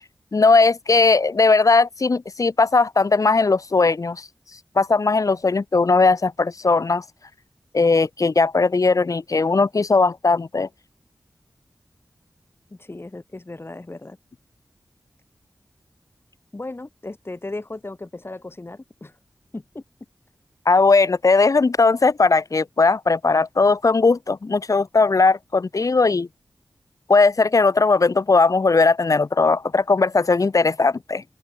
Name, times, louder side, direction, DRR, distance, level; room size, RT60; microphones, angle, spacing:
voice 1, 0.3-4.3 4.8-7.0 7.7-10.7 20.7-26.3 27.1-31.2, left 3 dB, 60° left, 2.1 m, -18 dB
voice 2, 12.7-14.2 16.5-19.1 19.5-19.8, left 2 dB, 40° left, 6.5 m, -36 dB
open air
cardioid pair, 45°, 6 cm